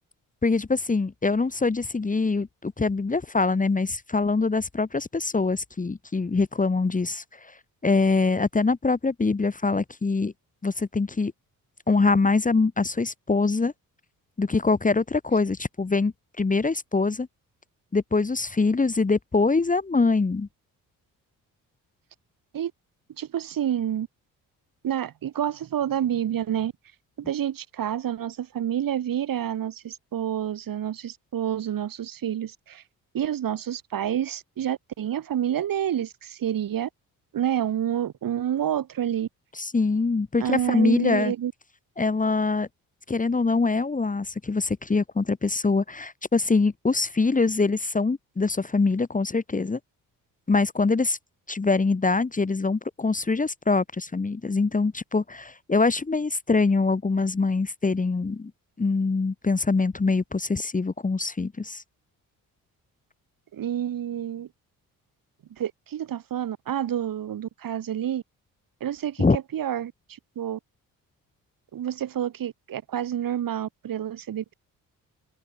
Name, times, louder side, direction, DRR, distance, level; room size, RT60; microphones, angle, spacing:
voice 1, 0.4-7.2 7.8-10.3 10.6-11.3 11.9-13.7 14.4-17.3 17.9-20.5 39.6-41.3 42.0-42.7 43.1-49.8 50.5-51.2 51.5-58.5 58.8-61.8 69.2-69.4, left 3 dB, 20° left, 1.5 m, -24 dB
voice 2, 23.2-24.1 24.8-26.7 27.2-32.8 33.1-36.9 37.3-39.3 40.4-41.5 63.5-64.5 65.5-68.2 68.8-70.6 71.7-74.5, right 10 dB, 65° right, 5.1 m, -28 dB
open air
cardioid pair, 75°, 36 cm